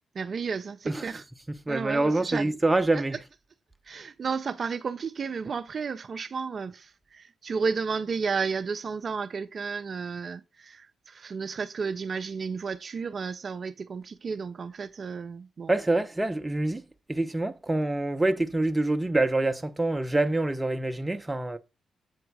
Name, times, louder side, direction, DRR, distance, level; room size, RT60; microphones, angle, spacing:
voice 1, 0.1-1.2 1.7-2.6 2.9-3.0 3.9-15.7, right 5 dB, 50° right, 0.4 m, -32 dB
voice 2, 1.7-3.2 15.7-16.8 17.1-21.6, right 2 dB, 15° right, 0.7 m, -26 dB
7.9 x 3.6 x 4.6 m
cardioid pair, 85°, 0 cm